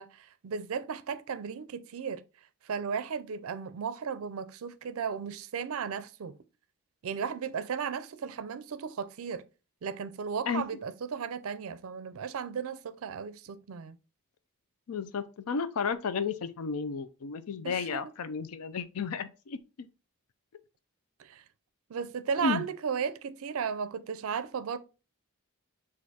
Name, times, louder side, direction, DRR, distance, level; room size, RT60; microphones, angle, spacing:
voice 1, 0.0-2.2 2.7-6.4 7.0-9.5 9.8-14.0 17.6-18.0 21.2-21.4 21.9-24.8, right 6 dB, 75° right, 0.4 m, -35 dB
voice 2, 14.9-19.9 22.4-22.6, left 5 dB, 80° left, 0.4 m, -33 dB
6.3 x 2.5 x 2.8 m
head